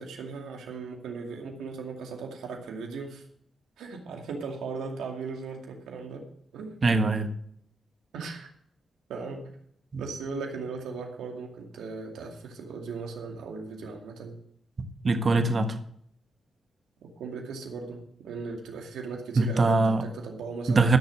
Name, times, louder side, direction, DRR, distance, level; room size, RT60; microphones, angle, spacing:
voice 1, 0.0-3.2 3.8-6.2 6.5-6.7 8.1-8.5 9.1-9.5 10.0-14.3 17.2-20.9, right 4 dB, 80° right, 1 dB, 2.3 m, -37 dB
voice 2, 6.8-7.3 9.9-10.0 15.0-15.8 19.3-20.0 20.7-21.0, right 3 dB, 50° right, 7 dB, 1.5 m, -22 dB
14.5 x 6.6 x 6.3 m, 0.67 s
supercardioid pair, 40°, 0 cm